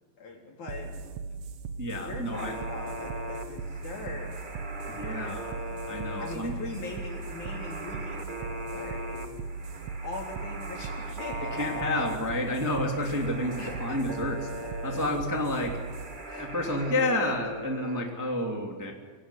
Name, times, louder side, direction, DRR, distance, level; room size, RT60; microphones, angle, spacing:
voice 1, 0.2-1.0 2.0-4.4 5.2-5.8 6.2-9.4 10.0-11.7 13.6-14.0 16.3-17.3, left 3 dB, 55° left, 1 dB, 5.1 m, -41 dB
sound 1, 0.7-17.7, right 4 dB, 75° right, 3.0 m, -39 dB
voice 2, 1.8-2.6 4.9-5.6 5.9-6.5 11.5-15.8 16.2-18.9, left 1 dB, 5° right, 1 dB, 2.2 m, -30 dB
sound 2, 2.3-18.3, right 1 dB, 30° right, 0.9 m, -40 dB
25.5 x 18.0 x 9.9 m, 1.5 s
omnidirectional pair, 4.1 m